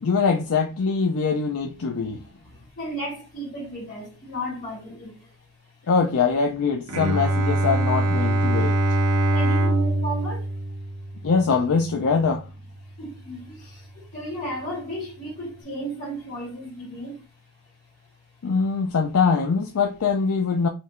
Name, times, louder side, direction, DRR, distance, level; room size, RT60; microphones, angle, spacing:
voice 1, 0.0-2.2 5.9-8.7 11.2-12.5 18.4-20.7, left 5 dB, 65° left, 0.5 m, -23 dB
voice 2, 2.8-5.1 9.3-10.4 13.0-13.5 14.1-17.2, right 1 dB, 40° left, 1.4 m, -33 dB
Bowed string instrument, 6.9-12.6, right 1 dB, 70° right, 0.6 m, -24 dB
4.4 x 3.1 x 2.5 m
head